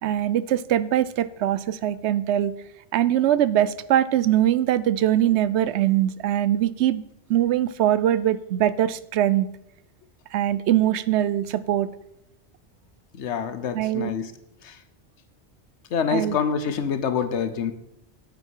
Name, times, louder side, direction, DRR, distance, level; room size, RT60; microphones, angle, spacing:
voice 1, 0.0-2.5 2.9-7.0 7.3-9.5 10.3-11.9 13.7-14.1 16.1-16.4, right 12 dB, 80° right, 15 dB, 0.9 m, -22 dB
voice 2, 13.2-14.3 14.6-14.7 15.9-17.7, left 6 dB, 90° left, 12 dB, 1.2 m, -26 dB
9.3 x 8.8 x 4.6 m, 0.83 s
omnidirectional pair, 1.1 m